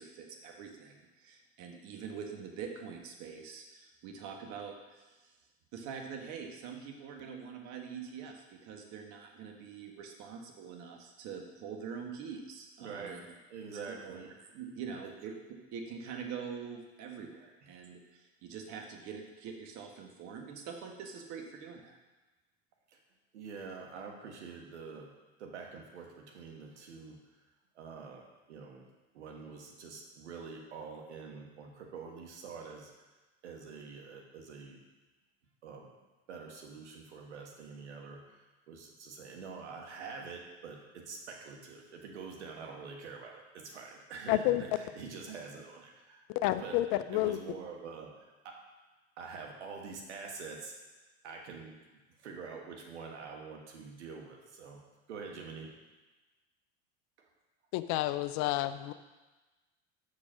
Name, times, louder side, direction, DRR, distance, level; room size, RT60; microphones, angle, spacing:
voice 1, 0.0-5.3 5.7-13.2 13.7-15.3 15.7-22.0, right 6 dB, 55° right, 2 dB, 1.4 m, -44 dB
voice 2, 12.8-13.2 13.5-14.3 23.3-25.1 25.4-27.2 27.7-28.2 28.5-28.8 29.1-32.9 33.4-34.8 35.6-35.9 36.3-46.2 46.6-48.6 49.2-50.7 51.2-51.7 52.2-54.8 55.1-55.7, right 5 dB, 90° right, 1 dB, 1.4 m, -46 dB
voice 3, 44.3-44.6 46.3-47.4 57.7-58.9, left 15 dB, 55° left, 12 dB, 0.6 m, -30 dB
6.4 x 5.2 x 6.2 m, 1.2 s
hypercardioid pair, 90°, 33 cm